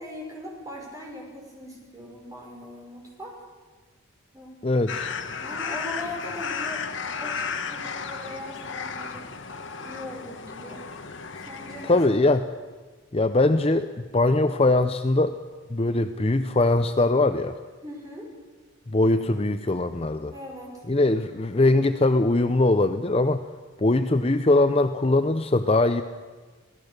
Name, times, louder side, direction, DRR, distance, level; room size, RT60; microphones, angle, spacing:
voice 1, 0.0-3.4 4.3-4.7 5.4-6.9 7.2-9.3 9.8-10.9 11.3-12.0 17.8-18.3 20.3-20.9, left 1 dB, 15° right, -2 dB, 5.9 m, -40 dB
voice 2, 4.6-5.1 11.9-12.5 13.1-15.3 15.7-17.6 18.9-20.3 20.9-23.4 23.8-26.0, left 2 dB, 30° left, 9 dB, 0.6 m, -21 dB
sound 1, 4.9-12.1, left 5 dB, 60° left, 1.2 m, -34 dB
27.0 x 17.5 x 6.7 m, 1.4 s
head